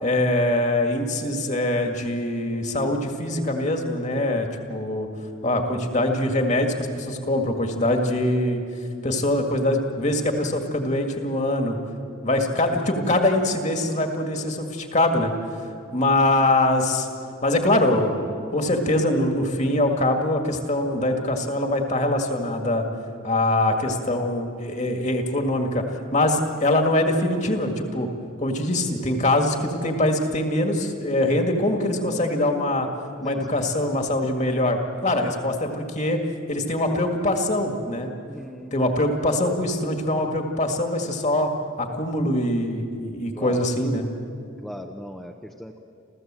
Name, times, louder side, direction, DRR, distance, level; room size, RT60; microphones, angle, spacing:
voice 1, 0.0-5.1 5.4-8.6 9.0-11.8 12.2-15.3 15.9-17.1 17.4-22.8 23.2-25.8 26.1-28.1 28.4-32.9 33.2-36.2 36.5-38.1 38.7-41.5 41.8-44.0, left 1 dB, 35° left, 4 dB, 2.0 m, -23 dB
voice 2, 33.2-33.7 38.3-38.7 43.4-43.7 44.6-45.8, equal, ahead, 2 dB, 0.7 m, -38 dB
29.0 x 14.5 x 7.6 m, 2.5 s
head